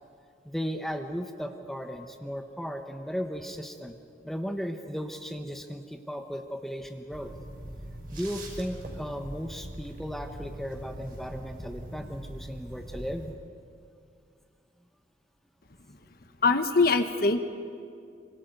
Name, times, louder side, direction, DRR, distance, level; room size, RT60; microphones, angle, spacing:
voice 1, 0.4-4.0 4.2-7.3 8.1-13.3, equal, ahead, 5 dB, 1.0 m, -36 dB
sound 1, 7.1-13.3, right 1 dB, 50° right, 5.6 m, -42 dB
voice 2, 16.4-17.4, left 3 dB, 55° left, 8 dB, 1.2 m, -22 dB
26.5 x 25.5 x 5.4 m, 2.4 s
head